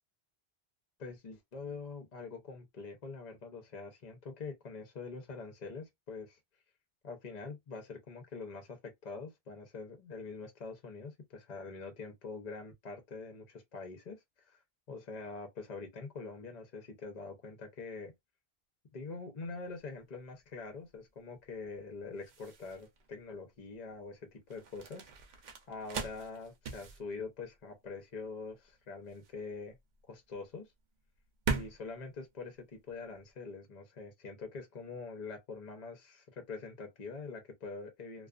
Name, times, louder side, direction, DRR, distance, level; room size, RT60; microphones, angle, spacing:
voice 1, 1.0-6.4 7.0-14.2 14.4-14.6 14.9-18.1 18.9-25.1 25.7-29.8 30.1-30.7 31.5-38.3, left 4 dB, 45° left, 0.8 m, -44 dB
sound 1, 19.5-33.3, right 5 dB, 55° right, 0.6 m, -43 dB
2.3 x 2.3 x 2.4 m
omnidirectional pair, 1.1 m